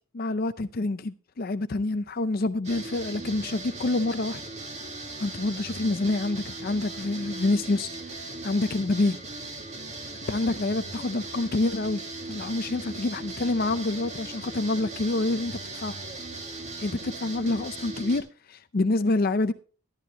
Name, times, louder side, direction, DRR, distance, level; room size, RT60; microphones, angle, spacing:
voice 1, 0.1-4.4 5.2-9.2 10.3-12.0 12.3-15.9 16.8-19.5, left 2 dB, 45° left, 0.5 m, -27 dB
sound 1, 2.6-18.2, right 2 dB, 35° right, 2.1 m, -38 dB
13.5 x 11.5 x 3.0 m
head